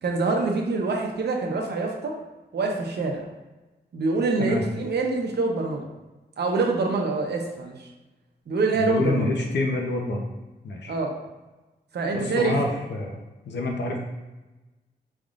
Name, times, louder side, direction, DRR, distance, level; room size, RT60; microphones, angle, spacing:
voice 1, 0.0-2.2 2.5-3.3 3.9-5.9 6.4-7.9 8.5-9.3 10.9-11.2 11.9-12.6, right 3 dB, 70° right, 1 dB, 0.8 m, -25 dB
voice 2, 8.7-10.3 10.6-10.9 12.1-14.0, left 2 dB, 90° left, 1 dB, 0.8 m, -27 dB
5.2 x 3.6 x 2.5 m, 1.1 s
wide cardioid pair, 95°, 17 cm